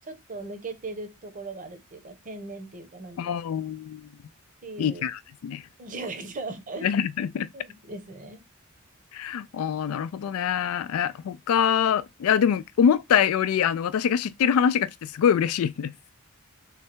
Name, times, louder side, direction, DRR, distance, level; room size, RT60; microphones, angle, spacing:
voice 1, 0.0-3.4 4.6-5.1 5.8-6.9 7.5-8.4, right 3 dB, 40° right, 0.8 m, -38 dB
voice 2, 3.2-4.1 4.8-5.6 6.8-7.5 9.1-16.1, left 8 dB, 90° left, 0.3 m, -24 dB
3.3 x 3.2 x 4.5 m
head